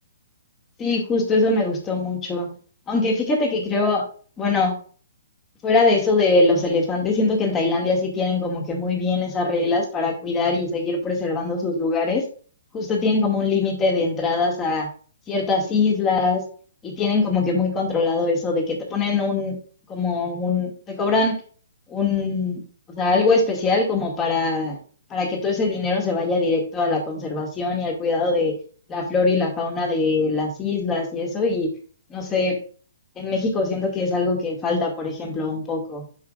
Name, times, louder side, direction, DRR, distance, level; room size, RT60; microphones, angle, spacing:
voice 1, 0.8-2.5 2.9-4.0 4.4-4.7 5.6-12.2 12.7-14.9 15.3-16.4 16.8-19.6 19.9-21.4 21.9-22.6 22.9-24.8 25.1-28.6 28.9-31.7 32.1-32.6 33.2-36.0, left 3 dB, 20° left, 1 dB, 2.1 m, -22 dB
11.0 x 4.9 x 2.5 m, 0.41 s
hypercardioid pair, 135°, 0 cm